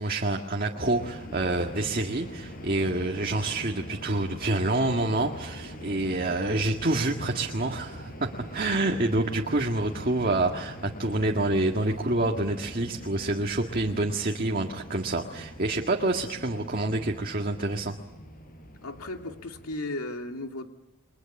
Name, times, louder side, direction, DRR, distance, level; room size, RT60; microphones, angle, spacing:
voice 1, 0.0-17.9, right 2 dB, 40° right, 2 dB, 1.8 m, -27 dB
sound 1, 0.8-19.8, equal, 40° left, 4.9 m, -43 dB
voice 2, 18.8-20.7, left 2 dB, 85° left, 3 dB, 2.5 m, -35 dB
30.0 x 23.5 x 7.2 m, 1.0 s
head